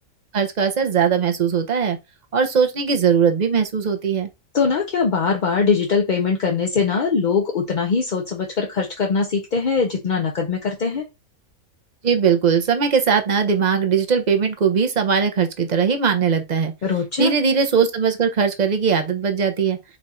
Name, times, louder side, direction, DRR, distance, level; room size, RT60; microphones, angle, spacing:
voice 1, 0.3-2.0 2.3-4.3 12.0-16.7 17.2-19.8, right 6 dB, 45° right, 0.6 m, -19 dB
voice 2, 4.5-11.0 16.8-17.3, left 5 dB, 50° left, 0.6 m, -21 dB
4.3 x 2.5 x 4.1 m
omnidirectional pair, 1.5 m